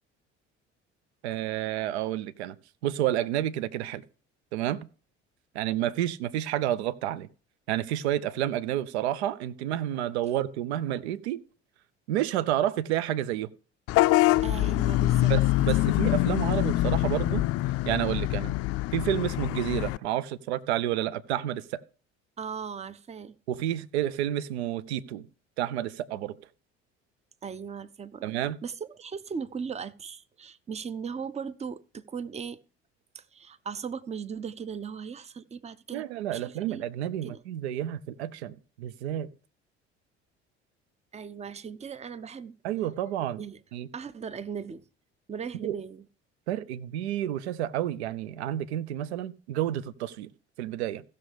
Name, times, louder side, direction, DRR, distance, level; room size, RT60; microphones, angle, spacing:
voice 1, 1.2-2.6 2.8-4.0 4.5-4.9 5.5-7.3 7.7-11.4 12.1-13.5 15.3-17.4 17.8-18.5 18.9-21.8 23.5-25.3 25.6-26.4 28.2-28.6 35.9-39.3 42.6-43.4 43.7-43.9 45.6-45.8 46.5-50.3 50.6-51.0, right 12 dB, 70° right, 0.6 m, -30 dB
Vehicle horn car horn honking / Bus, 13.9-20.0, left 17 dB, 45° left, 0.4 m, -24 dB
voice 2, 14.4-15.3 22.4-23.3 27.4-28.2 28.6-32.6 33.1-36.1 36.3-36.9 37.2-37.4 41.1-42.5 43.4-43.6 43.9-44.8 45.3-46.1, right 6 dB, 20° right, 0.6 m, -38 dB
16.0 x 6.5 x 3.4 m
figure-of-eight pair, 55°, 34 cm